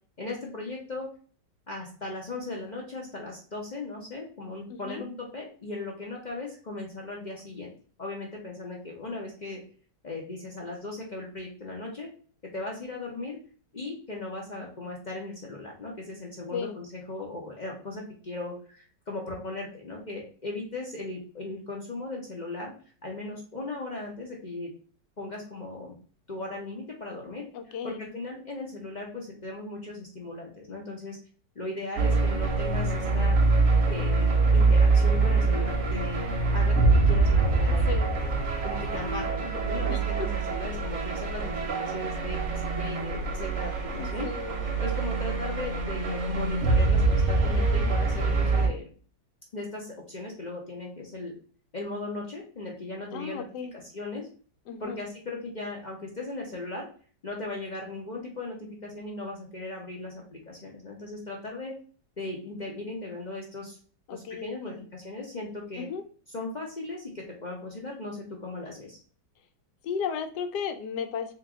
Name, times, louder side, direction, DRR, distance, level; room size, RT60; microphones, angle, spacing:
voice 1, 0.2-1.1 1.7-7.7 8.0-9.6 10.0-12.1 12.5-13.4 13.7-22.7 23.0-24.7 25.2-25.9 26.3-31.2 31.5-33.4 33.9-36.8 37.1-38.3 38.6-44.3 44.8-48.9 49.5-51.3 51.7-53.5 53.7-54.3 54.8-56.9 57.2-58.6 58.8-61.7 62.2-63.8 64.1-65.9 66.3-69.0, left 2 dB, 45° left, -1 dB, 0.5 m, -37 dB
voice 2, 4.7-5.0 16.5-16.7 27.5-28.0 37.7-38.2 39.9-40.0 44.0-44.6 53.1-53.7 54.7-55.0 64.1-64.8 65.8-66.0 69.8-71.3, left 6 dB, 75° left, 8 dB, 1.1 m, -35 dB
sound 1, 32.0-48.7, right 3 dB, 55° right, 0.9 m, -24 dB
3.5 x 2.9 x 3.6 m, 0.42 s
omnidirectional pair, 1.9 m